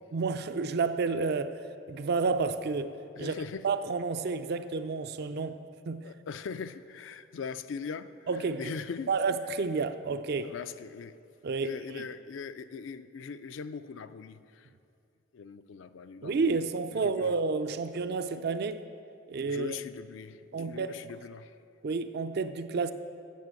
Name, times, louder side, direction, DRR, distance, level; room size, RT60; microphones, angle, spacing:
voice 1, 0.1-2.9 3.2-3.3 3.6-5.6 5.9-6.0 8.3-8.6 9.1-10.5 11.4-12.0 16.2-18.8 19.3-19.7 20.5-21.0 21.8-22.9, right 4 dB, 50° right, 11 dB, 0.4 m, -30 dB
voice 2, 3.2-3.7 6.0-9.1 10.4-11.2 11.6-14.7 15.3-17.4 19.4-21.6, left 5 dB, 65° left, 12 dB, 0.4 m, -41 dB
8.4 x 6.9 x 7.7 m, 2.5 s
head